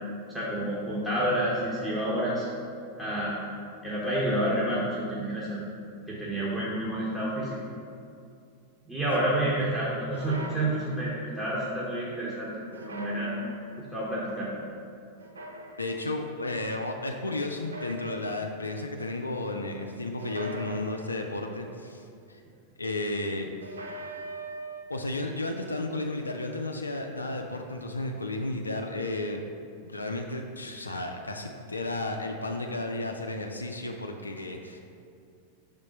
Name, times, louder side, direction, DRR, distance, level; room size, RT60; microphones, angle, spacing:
voice 1, 0.3-2.4 3.0-3.3 3.8-5.6 6.1-7.6 8.9-13.3 13.9-14.5, right 1 dB, 5° right, -8 dB, 1.0 m, -29 dB
sound 1, 10.1-11.3 12.7-13.9 15.2-16.2 17.5-18.7 20.2-21.5 23.6-24.8, right 1 dB, 75° right, 0.4 m, -42 dB
voice 2, 15.8-22.4 22.8-23.5 24.9-29.4 29.8-34.8, left 2 dB, 80° left, 3 dB, 0.4 m, -33 dB
5.3 x 3.6 x 5.2 m, 2.4 s
figure-of-eight pair, 90°, 0 cm